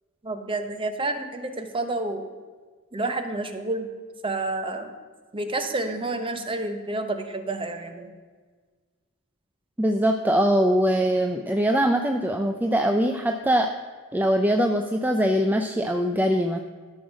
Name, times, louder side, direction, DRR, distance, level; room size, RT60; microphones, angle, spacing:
voice 1, 0.2-2.3 2.9-3.9 4.2-4.9 5.3-8.1, right 2 dB, 25° right, 7 dB, 1.0 m, -29 dB
voice 2, 9.8-13.7 14.1-16.6, equal, 10° right, 4 dB, 0.5 m, -22 dB
13.0 x 6.4 x 6.2 m, 1.5 s
head